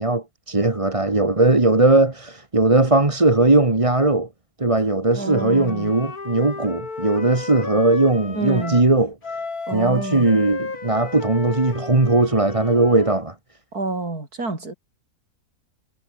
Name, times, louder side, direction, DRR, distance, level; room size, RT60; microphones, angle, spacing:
voice 1, 0.0-4.3 4.6-9.1 9.7-13.3, right 2 dB, 20° right, 1.9 m, -19 dB
Wind instrument woodwind instrument, 5.1-8.9 9.2-13.2, left 4 dB, 70° left, 3.6 m, -34 dB
voice 2, 5.1-5.9 8.3-8.8 9.7-10.3 13.7-14.7, right 3 dB, 75° right, 5.5 m, -28 dB
omnidirectional pair, 1.6 m